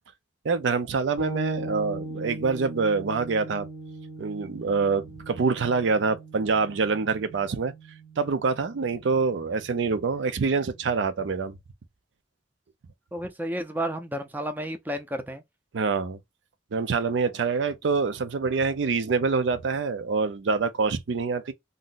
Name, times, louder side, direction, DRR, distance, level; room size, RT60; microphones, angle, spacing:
voice 1, 0.4-3.7 4.2-7.7 8.2-11.6 15.7-16.2 16.7-21.5, right 4 dB, 70° right, 0.5 m, -26 dB
sound 1, 1.2-10.9, right 1 dB, 90° right, 1.1 m, -40 dB
voice 2, 13.1-15.4, equal, 10° right, 0.4 m, -31 dB
2.6 x 2.1 x 3.7 m
head